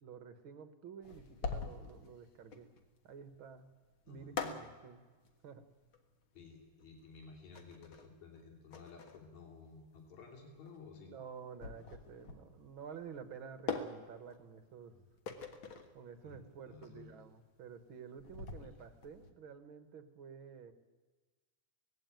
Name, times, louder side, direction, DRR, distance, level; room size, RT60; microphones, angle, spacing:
voice 1, 0.0-2.7 3.0-3.7 4.1-5.0 5.4-5.6 11.1-15.1 15.5-15.6 15.9-20.7, right 6 dB, 50° right, 10 dB, 1.7 m, -51 dB
sound 1, 1.0-19.3, left 5 dB, 45° left, 2.1 m, -46 dB
voice 2, 4.1-4.7 6.3-11.1 16.2-17.1 18.6-18.7, left 4 dB, 65° left, 2 dB, 4.4 m, -54 dB
19.0 x 16.5 x 9.1 m, 1.3 s
omnidirectional pair, 3.5 m